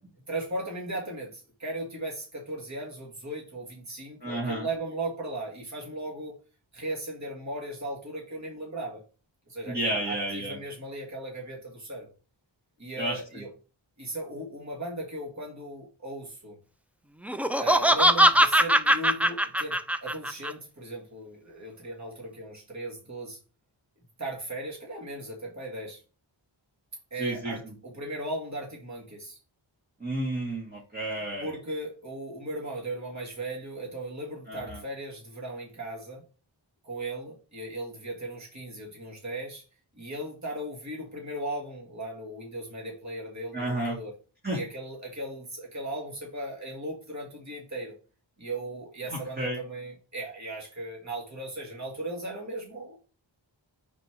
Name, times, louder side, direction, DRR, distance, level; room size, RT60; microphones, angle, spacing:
voice 1, 0.3-6.4 6.7-9.0 9.5-12.1 12.8-13.5 14.0-16.6 17.6-23.4 24.2-26.0 27.1-29.4 31.4-36.2 36.8-39.6 40.0-44.1 44.5-47.9 48.4-53.0, right 1 dB, 35° right, -2 dB, 1.9 m, -37 dB
voice 2, 4.2-4.7 9.7-10.6 13.0-13.4 27.2-27.7 30.0-31.5 34.5-34.8 43.5-44.0 44.4-44.6 49.4-49.6, right 1 dB, 20° right, -4 dB, 2.0 m, -31 dB
Laughter, 17.3-20.5, equal, 5° right, 0.4 m, -21 dB
5.2 x 4.3 x 4.5 m, 0.35 s
wide cardioid pair, 50°, 46 cm